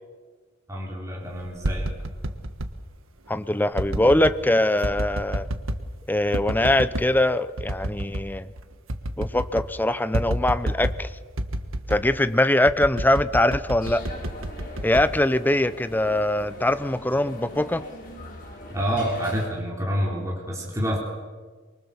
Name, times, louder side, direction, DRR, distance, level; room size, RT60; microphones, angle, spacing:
voice 1, 0.7-1.9 18.7-21.0, equal, 15° right, -3 dB, 3.9 m, -28 dB
sound 1, 1.4-2.7 3.7-4.4 4.8-5.9 6.3-7.1 7.6-8.3 8.6-8.7 8.9-9.7 10.1-11.0 11.4-12.1 12.6-15.8 16.2-16.6, right 1 dB, 85° right, 1.5 m, -30 dB
voice 2, 3.3-5.5 6.1-8.5 9.2-11.1 11.9-14.0 14.8-17.8, left 1 dB, 10° left, 13 dB, 0.7 m, -22 dB
sound 2, 13.8-19.5, left 1 dB, 45° left, 6.0 m, -40 dB
24.5 x 23.5 x 7.2 m, 1.4 s
head